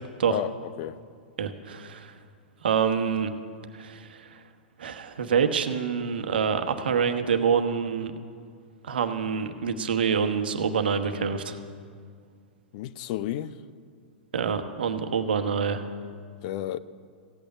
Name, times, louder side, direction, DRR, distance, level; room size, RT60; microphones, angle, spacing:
voice 1, 0.3-1.0 12.7-13.5 16.4-16.8, left 12 dB, 50° left, 0.6 m, -31 dB
voice 2, 1.4-2.1 2.6-3.3 3.8-4.2 4.8-8.1 8.9-11.6 14.3-15.8, right 6 dB, 70° right, 1.2 m, -26 dB
15.5 x 8.7 x 9.3 m
figure-of-eight pair, 100°, 5 cm